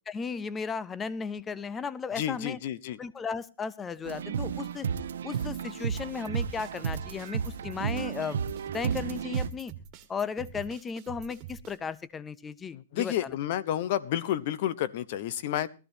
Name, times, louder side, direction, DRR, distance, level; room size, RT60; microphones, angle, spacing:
voice 1, 0.1-2.6 3.0-4.9 5.2-8.4 8.7-9.7 10.1-13.3, left 5 dB, 15° left, 18 dB, 0.6 m, -35 dB
voice 2, 2.2-3.0 12.7-15.7, left 11 dB, 50° left, 17 dB, 0.9 m, -30 dB
sound 1, 4.0-9.5, right 7 dB, 80° right, 0.9 m, -32 dB
sound 2, 6.2-11.8, right 10 dB, 25° right, 1.8 m, -46 dB
19.5 x 13.5 x 2.8 m, 0.33 s
hypercardioid pair, 150°, 0 cm